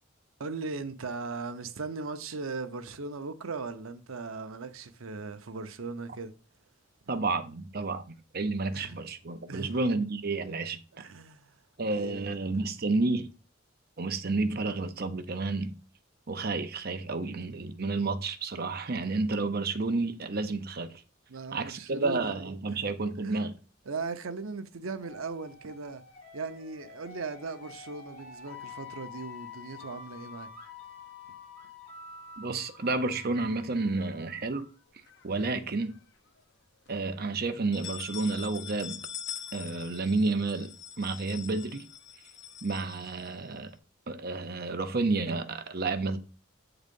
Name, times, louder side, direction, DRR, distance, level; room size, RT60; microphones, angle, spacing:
voice 1, 0.4-6.3 8.7-9.0 9.5-9.8 10.9-11.6 11.9-12.4 21.3-22.8 23.2-23.5 23.9-26.0 26.3-30.5, right 4 dB, 85° right, 0.8 m, -38 dB
voice 2, 7.1-11.0 11.8-13.3 14.0-15.7 16.3-21.0 21.5-23.6 32.4-34.7 35.2-36.0 36.9-39.0 39.5-41.9 42.6-43.8 44.1-46.2, right 3 dB, 50° right, 0.8 m, -31 dB
sound 1, 25.0-34.7, left 5 dB, 25° left, 3.7 m, -48 dB
sound 2, 35.1-36.0 36.4-36.5 36.9-37.0 37.5-43.7, left 9 dB, 55° left, 0.8 m, -44 dB
8.2 x 4.0 x 5.3 m
head